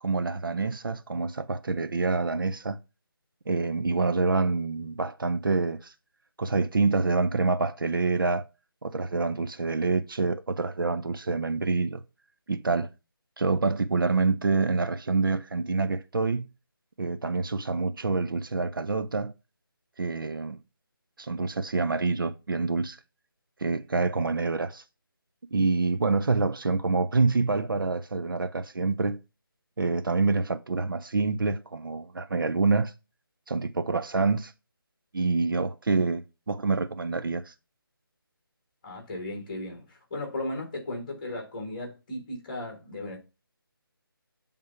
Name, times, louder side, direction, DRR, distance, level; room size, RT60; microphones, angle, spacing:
voice 1, 0.0-2.8 3.5-5.9 6.4-8.4 8.8-12.0 12.5-12.9 13.4-16.5 17.0-19.3 20.0-20.6 21.2-23.0 23.6-24.8 25.5-29.2 29.8-32.9 33.5-34.5 35.1-37.5, right 4 dB, 60° right, 0.6 m, -26 dB
voice 2, 38.8-43.2, left 1 dB, 20° left, 1.8 m, -36 dB
7.9 x 3.6 x 5.6 m
figure-of-eight pair, 175°, 12 cm